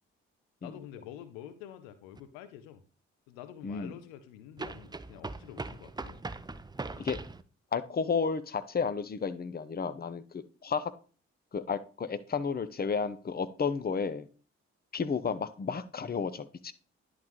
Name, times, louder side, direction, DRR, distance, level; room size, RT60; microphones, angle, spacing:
voice 1, 0.6-2.8 3.3-6.2, left 10 dB, 85° left, 12 dB, 0.7 m, -47 dB
sound 1, 2.2-2.3 4.6-7.4, right 3 dB, 15° right, 0.5 m, -40 dB
voice 2, 7.7-10.9 11.5-14.3 14.9-16.7, left 5 dB, 30° left, 13 dB, 0.7 m, -32 dB
10.5 x 4.0 x 3.1 m, 0.38 s
hypercardioid pair, 40°, 33 cm